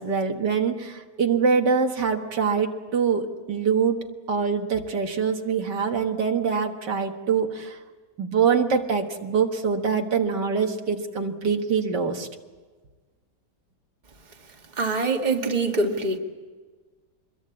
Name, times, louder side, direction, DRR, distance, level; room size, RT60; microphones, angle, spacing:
voice 1, 0.0-7.8 8.2-12.3, right 6 dB, 80° right, 4 dB, 2.2 m, -24 dB
voice 2, 14.8-16.2, right 3 dB, 25° right, 2 dB, 2.0 m, -24 dB
25.0 x 21.5 x 8.6 m, 1.4 s
omnidirectional pair, 1.8 m